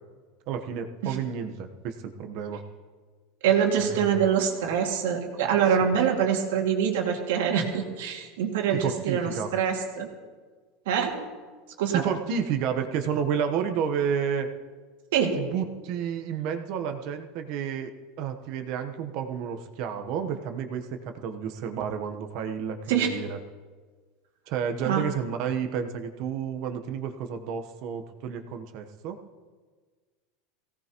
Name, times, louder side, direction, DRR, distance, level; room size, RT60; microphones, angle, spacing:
voice 1, 0.5-2.6 3.9-4.2 5.9-6.0 8.7-9.5 11.9-14.5 15.4-17.9 18.2-23.4 24.5-29.2, right 7 dB, 50° right, 7 dB, 1.1 m, -31 dB
voice 2, 3.4-10.1 10.9-11.2 11.8-12.0 15.1-15.4 22.9-23.1 24.8-25.1, right 8 dB, 85° right, 1 dB, 2.3 m, -25 dB
19.5 x 17.0 x 3.0 m, 1.5 s
supercardioid pair, 155°, 0 cm